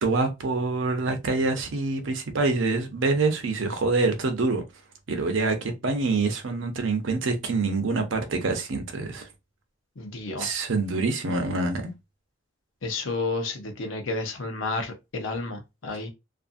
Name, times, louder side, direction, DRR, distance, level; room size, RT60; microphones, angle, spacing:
voice 1, 0.0-4.6 5.1-9.3 10.4-11.8, right 3 dB, 80° right, 0.7 m, -26 dB
voice 2, 10.0-10.5 12.8-16.1, left 3 dB, 85° left, 0.8 m, -31 dB
2.5 x 2.5 x 2.5 m
head